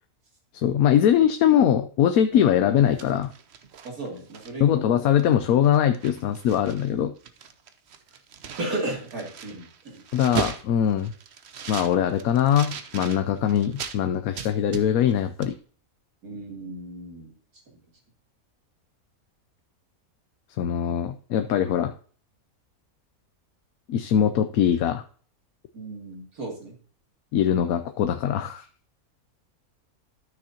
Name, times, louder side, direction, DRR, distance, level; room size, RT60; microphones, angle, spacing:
voice 1, 0.5-3.3 4.6-7.1 10.1-11.1 11.7-15.5 20.6-21.9 23.9-25.0 27.3-28.6, left 9 dB, 80° left, 8 dB, 1.1 m, -22 dB
sound 1, 2.7-4.8 5.2-5.3 5.6-6.9 7.2-14.0 14.4-15.2 15.4-15.6, right 7 dB, 55° right, 0.9 m, -37 dB
voice 2, 3.8-5.0 8.1-8.2 8.6-10.0 16.2-17.3 25.7-26.7, right 2 dB, 80° right, -1 dB, 3.0 m, -35 dB
13.0 x 6.3 x 2.8 m, 0.44 s
omnidirectional pair, 1.5 m